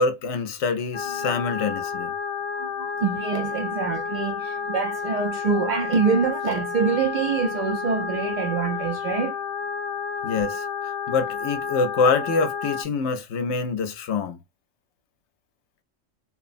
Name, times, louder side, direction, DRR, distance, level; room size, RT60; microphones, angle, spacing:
voice 1, 0.0-2.1 10.2-14.4, left 4 dB, 70° left, 0.9 m, -25 dB
sound 1, 0.9-12.8, left 6 dB, 50° left, 0.5 m, -31 dB
voice 2, 2.5-9.4, right 5 dB, 55° right, 0.5 m, -25 dB
2.9 x 2.0 x 2.5 m
omnidirectional pair, 1.3 m